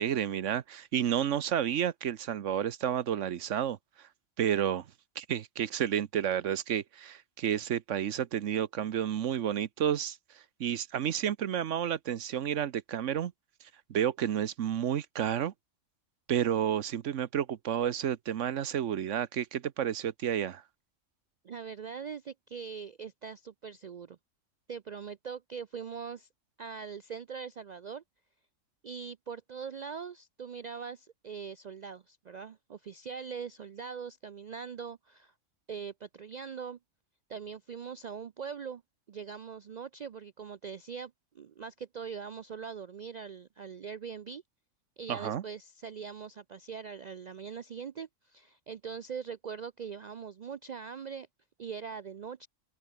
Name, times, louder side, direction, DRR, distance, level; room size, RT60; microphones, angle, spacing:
voice 1, 0.0-3.8 4.4-4.8 5.2-10.2 10.6-13.3 13.9-15.5 16.3-20.6 45.1-45.4, right 9 dB, 75° right, 1.2 m, -30 dB
voice 2, 21.4-24.2 24.7-26.3 26.6-28.0 28.8-35.3 35.7-36.8 37.3-38.8 39.1-44.4 45.0-51.3 51.6-52.5, right 6 dB, 60° right, 0.4 m, -42 dB
omnidirectional pair, 1.3 m